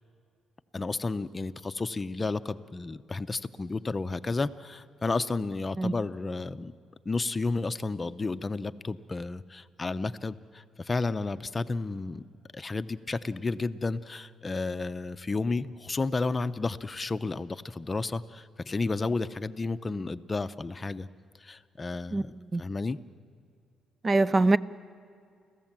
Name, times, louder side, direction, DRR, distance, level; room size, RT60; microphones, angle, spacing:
voice 1, 0.7-6.8 7.0-12.2 12.5-21.1 21.4-23.0, left 3 dB, 25° left, 13 dB, 0.7 m, -32 dB
voice 2, 24.0-24.6, right 2 dB, 30° right, 17 dB, 0.6 m, -22 dB
30.0 x 15.0 x 7.5 m, 2.4 s
cardioid pair, 90°, 0 cm